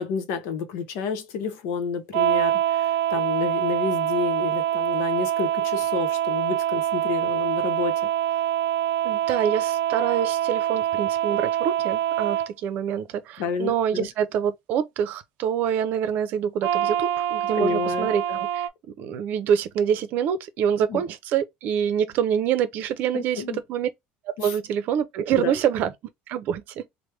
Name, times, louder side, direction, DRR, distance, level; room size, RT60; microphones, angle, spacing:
voice 1, 0.0-8.1 13.4-14.1 17.5-18.4 20.9-21.0 23.1-23.6 24.4-24.5 25.4-25.5, left 5 dB, 75° left, 0.8 m, -30 dB
sound 1, 2.1-12.5 16.6-18.7, right 11 dB, 90° right, 0.3 m, -25 dB
voice 2, 9.0-23.9 24.4-25.9 26.3-26.9, right 8 dB, 50° right, 0.6 m, -26 dB
3.3 x 2.2 x 3.2 m
cardioid pair, 165°, 4 cm